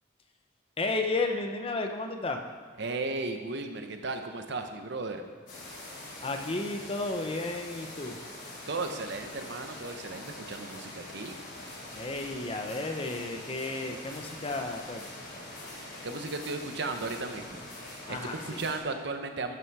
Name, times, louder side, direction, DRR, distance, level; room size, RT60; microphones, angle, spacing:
voice 1, 0.8-2.4 6.2-8.2 11.9-15.1 18.0-18.6, left 2 dB, 30° left, 5 dB, 0.7 m, -33 dB
voice 2, 2.8-5.2 8.7-11.4 16.0-19.6, right 3 dB, 60° right, 6 dB, 0.8 m, -35 dB
sound 1, 5.5-18.8, left 1 dB, 55° left, 3.3 m, -44 dB
12.0 x 6.0 x 4.7 m, 1.5 s
head